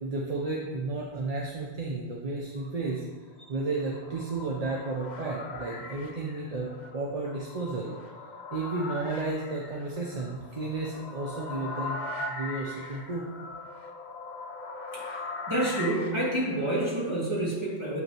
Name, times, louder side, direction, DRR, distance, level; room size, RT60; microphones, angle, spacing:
voice 1, 0.0-3.0 3.5-7.9 8.5-12.0 12.3-13.2, right 3 dB, 40° right, -2 dB, 0.7 m, -32 dB
sound 1, 3.5-16.9, left 3 dB, 50° left, 0.7 m, -40 dB
voice 2, 15.5-18.0, right 1 dB, 25° right, -6 dB, 1.9 m, -28 dB
7.9 x 5.4 x 3.0 m, 1.3 s
omnidirectional pair, 1.1 m